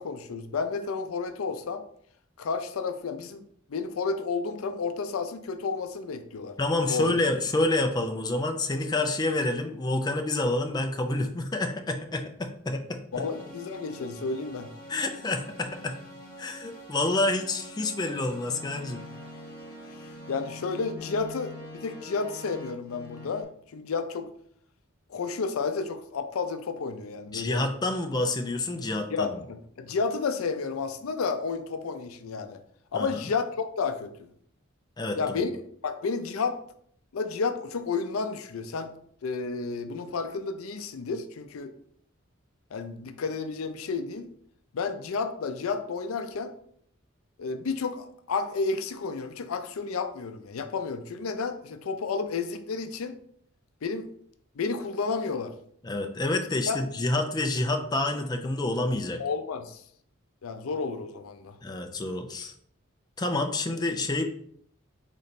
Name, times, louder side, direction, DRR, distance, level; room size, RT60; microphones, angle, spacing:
voice 1, 0.0-1.8 2.4-3.4 3.7-6.6 6.9-7.2 13.1-14.7 20.3-24.3 25.1-27.6 29.1-32.6 32.9-34.1 35.2-35.5 35.8-36.6 37.1-38.9 39.2-41.7 42.7-44.3 44.7-46.5 47.4-53.1 53.8-54.1 54.6-55.5 56.7-56.8 59.2-59.8 60.4-61.6, left 4 dB, 90° left, 9 dB, 0.5 m, -31 dB
voice 2, 6.6-13.0 14.9-16.0 16.4-19.0 27.3-29.4 32.9-33.2 35.0-35.5 55.8-59.2 61.6-62.5 63.2-64.2, left 2 dB, 20° left, 5 dB, 0.4 m, -28 dB
sound 1, 13.1-23.4, left 1 dB, 45° left, 1.2 m, -44 dB
4.0 x 3.2 x 4.1 m, 0.65 s
head